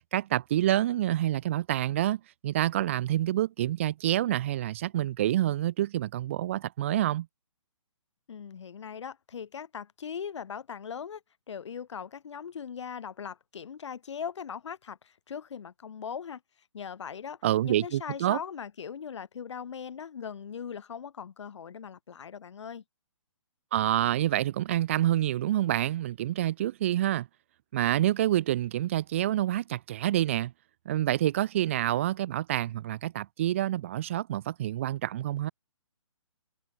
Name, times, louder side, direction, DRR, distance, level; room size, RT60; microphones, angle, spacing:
voice 1, 0.1-7.3 17.4-18.4 23.7-27.3 27.7-30.5 30.9-35.5, right 13 dB, 25° right, 0.6 m, -27 dB
voice 2, 8.3-11.2 11.5-16.4 16.7-22.8, left 7 dB, 60° left, 3.2 m, -40 dB
hypercardioid pair, 165°, 17 cm